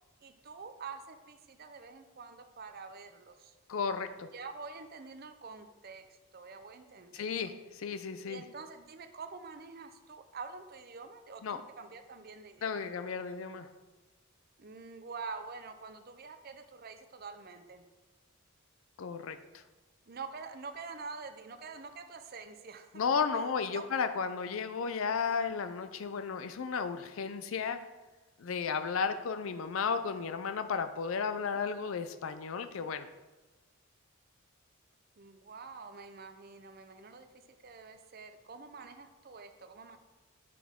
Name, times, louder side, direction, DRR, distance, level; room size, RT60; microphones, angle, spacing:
voice 1, 0.2-3.6 4.3-7.5 8.2-12.9 14.6-17.8 20.1-23.0 23.7-24.0 35.2-40.0, right 4 dB, 45° right, 8 dB, 0.6 m, -46 dB
voice 2, 3.7-4.3 7.1-8.4 11.4-11.6 12.6-13.7 19.0-19.6 22.9-27.8 28.4-33.1, left 5 dB, 70° left, 10 dB, 0.5 m, -34 dB
9.2 x 5.9 x 3.6 m, 1.2 s
head